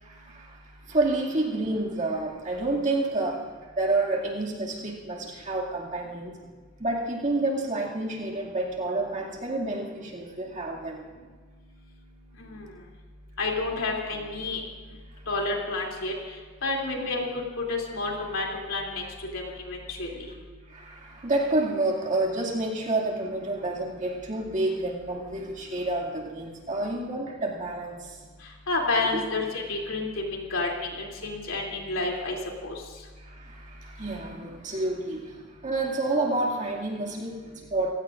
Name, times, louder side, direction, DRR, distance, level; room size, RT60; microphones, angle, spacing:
voice 1, 0.0-0.6 0.9-3.5 3.8-6.4 6.8-11.0 20.7-28.2 29.1-29.3 33.2-35.4 35.6-37.9, right 2 dB, 40° right, -3 dB, 2.4 m, -29 dB
voice 2, 13.4-14.6 15.3-16.1 16.6-17.2 17.7-19.0 19.3-20.1 28.7-32.4 32.6-32.7, left 3 dB, 80° left, -1 dB, 3.1 m, -29 dB
26.5 x 16.5 x 2.6 m, 1.5 s
head